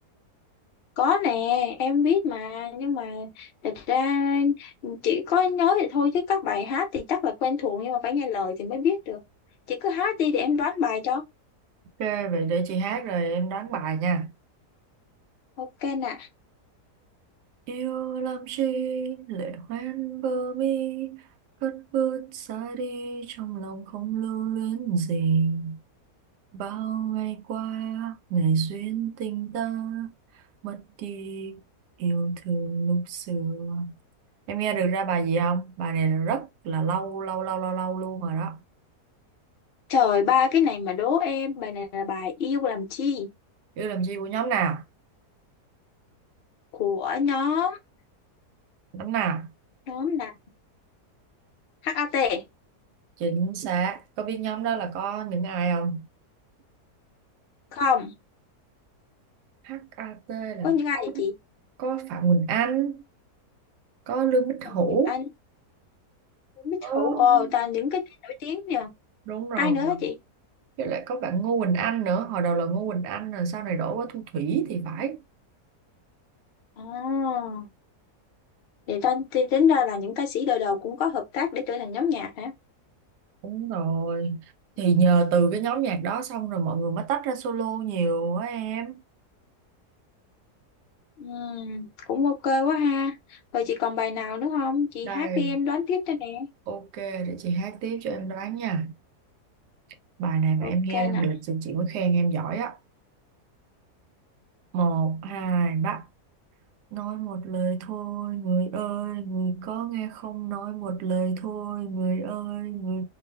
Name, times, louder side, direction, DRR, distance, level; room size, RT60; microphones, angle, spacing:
voice 1, 1.0-9.2 9.7-11.2 15.6-16.3 39.9-43.3 46.7-47.8 49.9-50.3 51.8-52.4 57.7-58.1 60.6-61.3 64.9-65.2 66.6-68.9 69.6-70.1 76.8-77.7 78.9-82.5 91.2-96.5 100.6-101.2, left 7 dB, 60° left, 0.6 m, -26 dB
voice 2, 12.0-14.3 17.7-21.2 21.6-25.8 26.5-30.1 30.6-31.6 32.0-33.9 34.5-38.6 43.8-44.8 48.9-49.5 53.2-56.1 59.6-61.3 61.8-63.0 64.1-65.1 66.8-67.5 69.3-70.1 70.8-75.2 83.4-84.4 84.8-89.0 95.0-95.6 96.7-98.9 100.2-102.8 104.7-106.1 106.9-113.0, right 5 dB, 85° right, 1.2 m, -27 dB
2.6 x 2.4 x 3.2 m
omnidirectional pair, 1.7 m